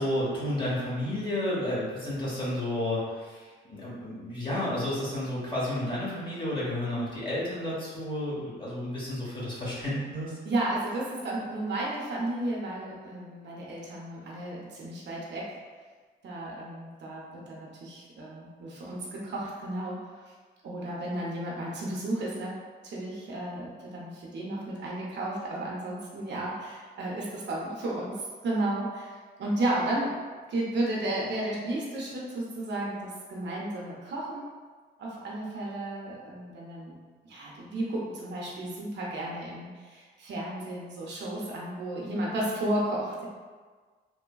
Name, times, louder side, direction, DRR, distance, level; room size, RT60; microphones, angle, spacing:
voice 1, 0.0-10.4, left 1 dB, 25° left, -7 dB, 1.0 m, -31 dB
voice 2, 10.4-15.5 16.2-20.2 20.6-22.5 22.8-30.1 30.5-34.5 35.0-36.9 37.3-43.3, right 1 dB, 60° right, -4 dB, 0.7 m, -33 dB
3.2 x 2.2 x 2.2 m, 1.5 s
cardioid pair, 90°, 20 cm